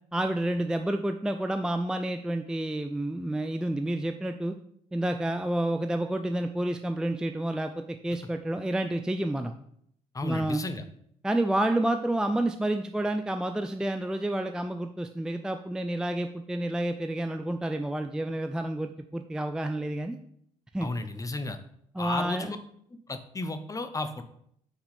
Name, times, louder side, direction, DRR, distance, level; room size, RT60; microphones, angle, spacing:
voice 1, 0.1-4.5 4.9-9.5 10.2-10.6 11.2-20.2 20.7-20.9 21.9-22.5, right 1 dB, 5° right, 7 dB, 0.4 m, -29 dB
voice 2, 10.1-10.8 20.8-21.6 22.0-22.6 22.9-24.2, left 2 dB, 20° left, 9 dB, 0.8 m, -33 dB
8.7 x 4.8 x 3.4 m, 0.68 s
figure-of-eight pair, 45°, 18 cm